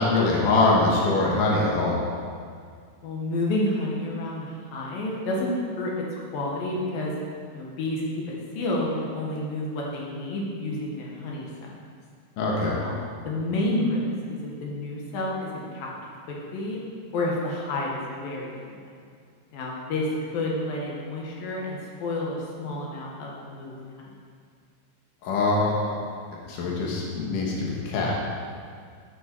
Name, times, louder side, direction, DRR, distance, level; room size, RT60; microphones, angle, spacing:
voice 1, 0.0-2.0 12.4-12.8 25.2-26.0 26.4-28.2, left 2 dB, 85° left, -3 dB, 1.8 m, -23 dB
voice 2, 3.0-7.1 7.5-11.8 12.8-12.9 13.3-15.9 16.3-16.8 17.1-18.8 19.5-24.1, left 1 dB, 65° left, -3 dB, 2.3 m, -30 dB
12.0 x 6.5 x 4.5 m, 2.1 s
omnidirectional pair, 5.9 m